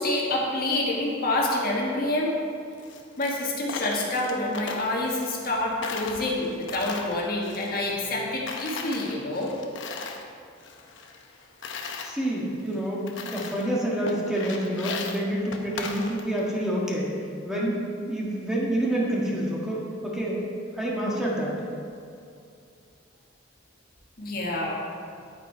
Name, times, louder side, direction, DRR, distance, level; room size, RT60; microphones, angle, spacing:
voice 1, 0.0-2.3 3.2-9.5 24.2-24.8, left 2 dB, 50° left, -2 dB, 1.7 m, -27 dB
Coin (dropping), 2.7-5.6 5.8-8.2 8.5-10.3 10.6-12.1 12.7-12.8 13.1-13.7 14.1-16.5, left 4 dB, 70° left, 0.9 m, -37 dB
voice 2, 12.0-17.1 17.4-17.8 18.1-20.4 20.7-21.6, right 1 dB, 5° right, -5 dB, 1.6 m, -28 dB
10.0 x 8.9 x 4.5 m, 2.5 s
head